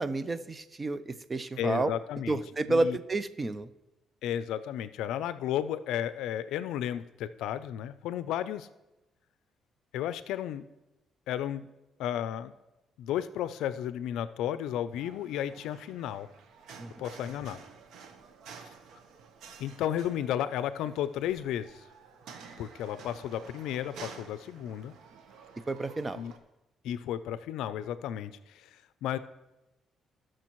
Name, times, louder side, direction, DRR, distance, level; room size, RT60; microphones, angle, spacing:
voice 1, 0.0-1.9 2.3-3.7 16.8-16.9 25.7-26.2, right 2 dB, 25° right, 13 dB, 0.6 m, -30 dB
voice 2, 1.6-2.4 2.7-3.0 4.2-8.7 9.9-10.6 11.3-11.7 12.0-12.5 13.0-16.3 17.0-17.6 19.6-21.8 22.6-24.9 26.1-26.3 26.8-29.2, left 10 dB, 90° left, 14 dB, 0.4 m, -33 dB
sound 1, 14.9-26.4, right 5 dB, 80° right, 1.0 m, -51 dB
18.0 x 6.3 x 3.1 m, 1.0 s
cardioid pair, 90°, 0 cm